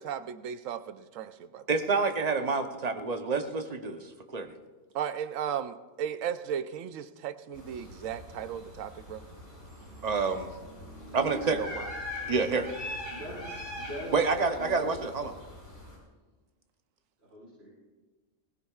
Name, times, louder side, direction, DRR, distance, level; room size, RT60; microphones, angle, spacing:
voice 1, 0.0-1.6 4.9-9.2 11.5-11.9, right 8 dB, 90° right, 11 dB, 1.0 m, -36 dB
voice 2, 1.7-4.1 4.3-4.5 10.0-10.5 11.1-11.6 12.3-12.7 14.1-15.3, right 4 dB, 35° right, 7 dB, 0.8 m, -28 dB
sound 1, 7.5-16.0, left 1 dB, 35° left, 4.6 m, -42 dB
voice 3, 11.1-11.4 12.2-12.3 13.1-14.1 14.5-14.9 17.3-17.7, equal, 70° right, -8 dB, 4.4 m, -40 dB
20.5 x 16.0 x 2.4 m, 1.3 s
omnidirectional pair, 1.3 m